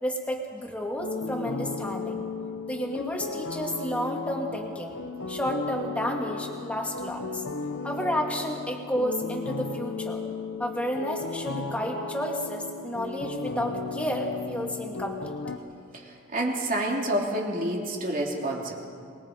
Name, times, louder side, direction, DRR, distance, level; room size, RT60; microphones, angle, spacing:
voice 1, 0.0-2.2 2.7-5.0 5.3-7.4 7.8-10.2 10.6-15.4, equal, 5° left, 0 dB, 2.1 m, -31 dB
sound 1, 1.0-15.6, left 4 dB, 80° left, 1.2 m, -35 dB
voice 2, 16.3-18.7, right 1 dB, 40° right, -1 dB, 3.0 m, -28 dB
27.0 x 21.0 x 5.2 m, 2.3 s
head